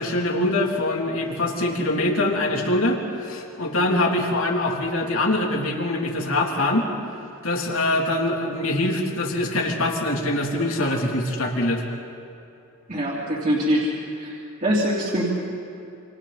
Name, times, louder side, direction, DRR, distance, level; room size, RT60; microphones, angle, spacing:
voice 1, 0.0-6.9 7.4-11.9, left 1 dB, 80° left, -1 dB, 3.2 m, -23 dB
voice 2, 12.9-13.9 14.2-15.3, equal, 40° right, -6 dB, 3.3 m, -23 dB
28.0 x 28.0 x 4.2 m, 2.7 s
head